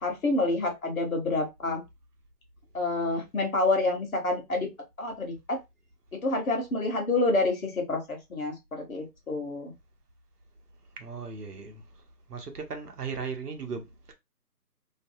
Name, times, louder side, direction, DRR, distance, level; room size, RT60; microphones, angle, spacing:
voice 1, 0.0-1.8 2.7-4.7 5.0-5.6 6.1-9.7, left 2 dB, 55° left, 1.0 m, -28 dB
voice 2, 11.0-12.0 12.3-14.1, right 5 dB, 65° right, 0.8 m, -37 dB
2.6 x 2.1 x 2.6 m
figure-of-eight pair, 170°, 50 cm